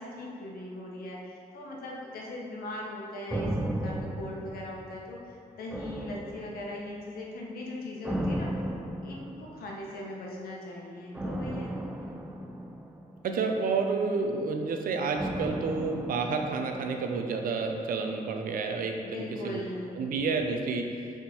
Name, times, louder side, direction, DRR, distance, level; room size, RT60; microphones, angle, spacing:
voice 1, 0.0-3.5 3.8-5.2 5.6-8.5 9.0-11.7 19.0-20.1, left 1 dB, 85° left, -2 dB, 1.1 m, -39 dB
sound 1, 3.3-5.2 5.7-7.0 8.0-9.8 11.1-13.5 15.1-17.3 17.6-17.7, right 1 dB, 10° right, 0.4 m, -35 dB
voice 2, 13.2-19.6 20.0-21.1, right 4 dB, 70° right, 4 dB, 0.6 m, -30 dB
6.8 x 3.7 x 4.4 m, 2.4 s
wide cardioid pair, 145°, 15 cm